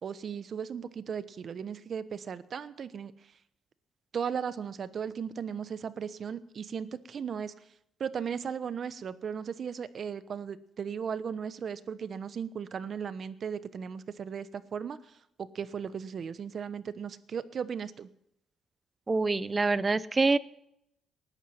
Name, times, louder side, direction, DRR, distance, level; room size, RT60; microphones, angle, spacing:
voice 1, 0.0-3.3 4.1-7.5 8.0-18.1, right 7 dB, 55° right, 14 dB, 1.0 m, -36 dB
voice 2, 19.1-20.4, right 3 dB, 25° right, 17 dB, 0.7 m, -25 dB
19.5 x 11.5 x 5.8 m, 0.78 s
cardioid pair, 90°, 0 cm